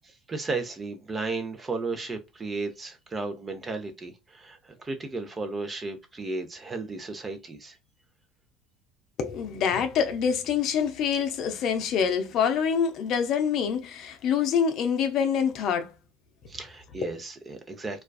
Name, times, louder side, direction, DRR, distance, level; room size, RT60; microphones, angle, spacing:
voice 1, 0.3-7.8 16.5-18.0, right 3 dB, 25° right, 0.6 m, -34 dB
voice 2, 9.2-15.9 17.0-17.1, left 7 dB, 55° left, 0.5 m, -26 dB
2.4 x 2.3 x 2.3 m
hypercardioid pair, 70°, 0 cm